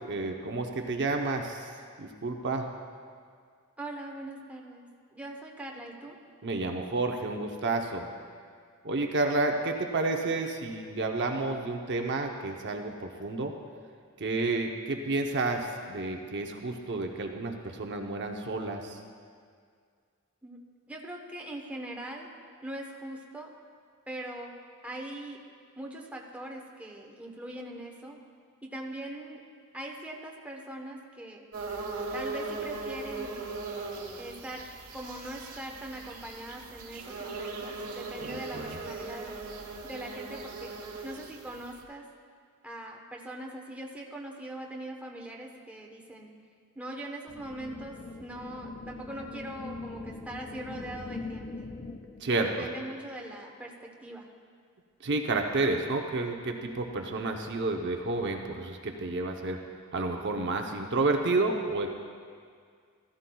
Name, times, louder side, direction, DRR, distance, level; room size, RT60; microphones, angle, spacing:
voice 1, 0.1-1.7 2.0-2.7 6.4-8.1 8.8-13.5 14.2-19.0 38.2-38.8 52.2-52.7 55.0-59.6 59.9-61.9, right 3 dB, 55° right, 3 dB, 0.8 m, -30 dB
voice 2, 3.8-4.9 5.1-6.2 20.4-20.6 20.9-22.3 22.6-23.5 24.1-24.5 24.8-25.4 25.8-28.2 28.6-29.4 29.7-31.4 32.1-33.4 34.2-34.6 34.9-39.3 39.8-40.7 41.0-42.0 42.6-46.3 46.7-51.7 52.4-53.7 54.0-54.3, right 1 dB, 5° right, -1 dB, 1.0 m, -41 dB
sound 1, 31.5-41.8, right 3 dB, 70° right, 1.4 m, -39 dB
sound 2, 47.3-52.3, left 3 dB, 35° left, 0.4 m, -42 dB
15.0 x 14.0 x 2.3 m, 2.1 s
head